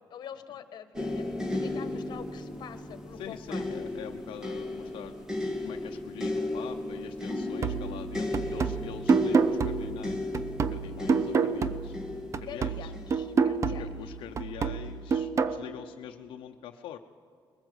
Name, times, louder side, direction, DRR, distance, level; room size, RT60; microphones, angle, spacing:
voice 1, 0.1-3.7 10.9-11.1 12.5-13.9, left 9 dB, 55° left, 11 dB, 1.3 m, -45 dB
sound 1, 0.9-14.0 14.8-15.0, left 2 dB, 5° right, 1.7 m, -35 dB
voice 2, 3.2-10.2 10.7-12.0 12.4-12.9 13.6-17.0, left 10 dB, 85° left, 4 dB, 0.7 m, -44 dB
sound 2, 7.6-12.1 12.3-15.6, right 5 dB, 35° right, 0.7 m, -28 dB
21.5 x 20.0 x 7.9 m, 2.2 s
cardioid pair, 155°, 9 cm